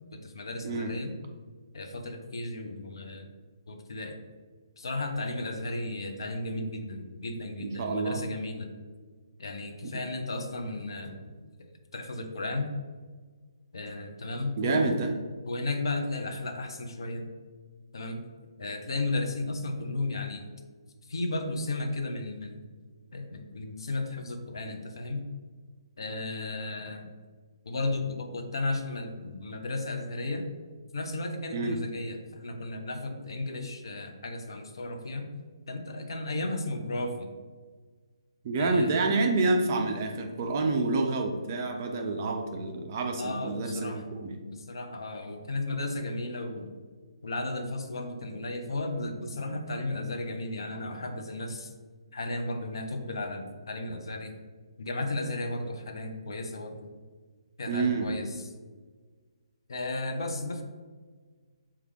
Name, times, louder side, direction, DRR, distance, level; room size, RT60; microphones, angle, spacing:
voice 1, 0.1-1.1 1.7-3.3 3.7-4.2 4.8-8.7 9.4-11.3 11.9-12.7 13.7-15.0 15.5-17.3 17.9-18.2 18.6-20.5 21.1-22.6 23.1-25.3 26.0-27.1 27.7-30.5 30.9-35.3 35.7-37.3 38.6-39.0 43.2-44.0 44.5-46.7 47.2-51.7 52.1-54.3 54.8-56.9 57.6-58.5 59.7-60.6, left 2 dB, 55° left, 4 dB, 0.5 m, -34 dB
voice 2, 7.6-8.2 9.8-9.9 14.6-15.1 31.5-31.8 38.4-44.4 57.7-58.1, right 3 dB, 30° right, 3 dB, 0.4 m, -28 dB
4.6 x 2.3 x 3.1 m, 1.5 s
figure-of-eight pair, 135°, 3 cm